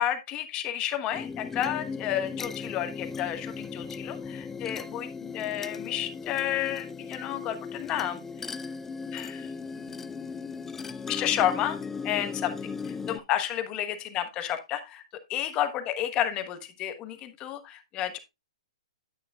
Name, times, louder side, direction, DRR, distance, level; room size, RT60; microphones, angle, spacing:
voice 1, 0.0-8.2 9.1-9.5 9.8-10.4 11.1-11.8 12.0-15.0 15.3-18.2, left 11 dB, 25° left, 8 dB, 1.1 m, -31 dB
sound 1, 1.1-13.2, left 5 dB, 10° left, 0.4 m, -37 dB
9.5 x 8.3 x 2.4 m, 0.23 s
hypercardioid pair, 150°, 4 cm